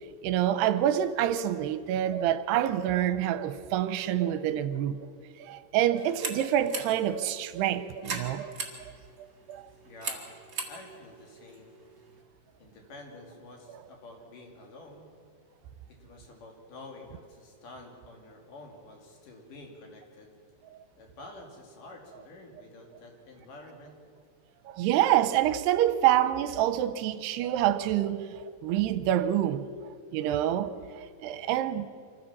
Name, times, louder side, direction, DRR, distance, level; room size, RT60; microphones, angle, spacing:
voice 1, 0.2-5.0 5.4-8.5 9.5-9.6 24.7-31.9, right 11 dB, 85° right, 2.8 m, -27 dB
sound 1, 5.9-12.2, right 4 dB, 60° right, 0.8 m, -41 dB
voice 2, 9.8-10.3 10.6-11.8 12.6-15.1 15.9-20.3 21.0-24.0 31.3-31.6, left 2 dB, 55° left, 3.9 m, -49 dB
25.5 x 15.0 x 7.4 m
omnidirectional pair, 4.7 m